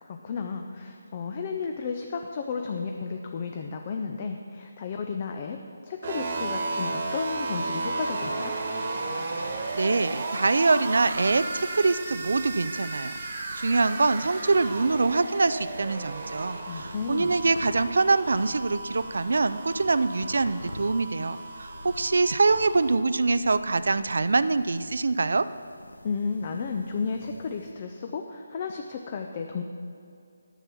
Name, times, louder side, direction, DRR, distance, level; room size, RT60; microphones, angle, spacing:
voice 1, 0.0-8.5 16.6-17.3 26.0-29.6, left 5 dB, 35° left, 4 dB, 0.5 m, -33 dB
sound 1, 6.0-23.0, right 3 dB, 45° right, 1.3 m, -34 dB
voice 2, 9.4-25.5, right 3 dB, 65° right, 14 dB, 0.4 m, -24 dB
sound 2, 11.0-27.7, left 1 dB, 85° left, 0.9 m, -47 dB
9.9 x 6.8 x 5.9 m, 2.4 s
figure-of-eight pair, 150°, 0 cm